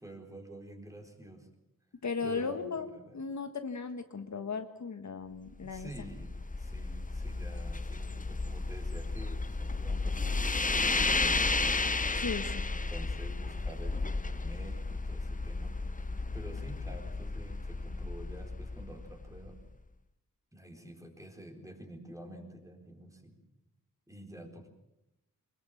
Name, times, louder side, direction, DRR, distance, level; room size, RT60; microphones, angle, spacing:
voice 1, 0.0-1.5 2.2-3.3 5.6-11.9 12.6-15.8 16.3-19.6 20.5-23.4 24.1-24.7, right 1 dB, 10° right, 3 dB, 4.3 m, -49 dB
voice 2, 2.0-2.9 3.1-6.1 12.2-12.6, left 5 dB, 55° left, 8 dB, 1.6 m, -36 dB
sound 1, 5.5-19.7, left 3 dB, 25° left, 1.0 m, -33 dB
22.5 x 21.0 x 7.4 m, 0.90 s
wide cardioid pair, 95°, 34 cm